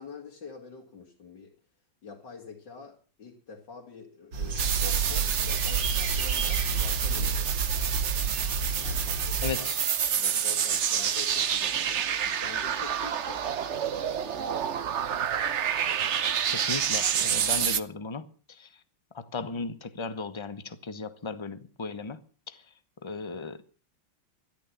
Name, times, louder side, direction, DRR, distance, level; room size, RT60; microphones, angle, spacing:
voice 1, 0.0-1.5 2.0-8.4 8.8-9.7 10.1-13.5 13.9-15.0, left 5 dB, 65° left, 3.1 m, -46 dB
sound 1, 4.3-9.5, right 5 dB, 70° right, 2.5 m, -30 dB
sound 2, 4.6-17.8, right 8 dB, 50° right, 0.9 m, -28 dB
voice 2, 9.4-9.8 16.5-18.8 19.1-22.7 23.0-23.6, left 4 dB, 20° left, 0.7 m, -36 dB
14.0 x 12.0 x 7.0 m
omnidirectional pair, 2.1 m